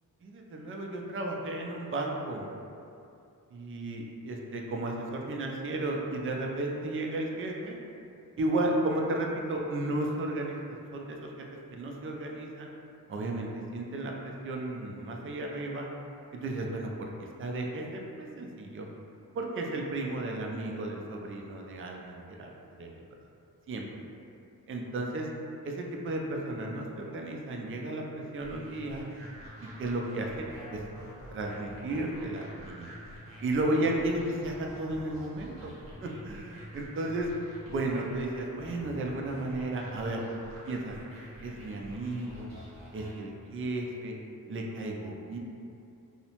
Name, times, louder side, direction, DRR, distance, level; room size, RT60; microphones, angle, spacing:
voice 1, 0.2-2.5 3.5-7.8 8.4-12.7 13.1-15.9 16.4-17.1 17.4-18.9 19.3-22.5 22.8-22.9 23.7-23.9 24.7-25.3 25.6-29.1 29.6-30.4 30.7-30.8 31.3-32.9 33.4-35.7 36.0-37.3 37.7-40.2 40.7-40.9 41.4-42.5 42.9-44.1 44.5-45.4, right 2 dB, 35° right, 0 dB, 0.4 m, -33 dB
sound 1, 28.4-43.2, equal, 75° right, 0.9 m, -47 dB
2.7 x 2.0 x 2.9 m, 2.6 s
cardioid pair, 60°, 37 cm